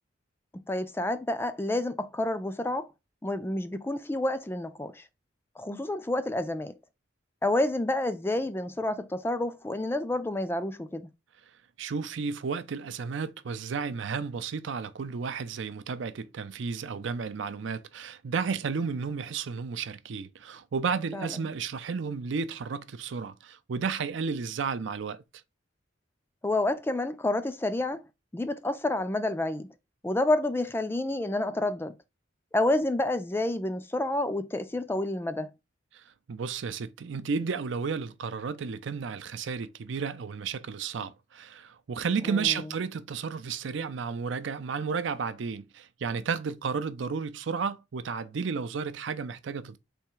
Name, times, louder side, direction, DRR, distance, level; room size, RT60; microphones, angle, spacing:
voice 1, 0.7-2.9 3.2-5.0 5.6-6.7 7.4-11.1 21.1-21.5 26.4-28.0 28.3-29.7 30.0-31.9 32.5-35.5 42.2-42.6, left 1 dB, 10° left, 0.3 m, -29 dB
voice 2, 11.8-25.2 35.9-49.8, right 5 dB, 75° right, 0.5 m, -32 dB
3.5 x 3.2 x 4.5 m
head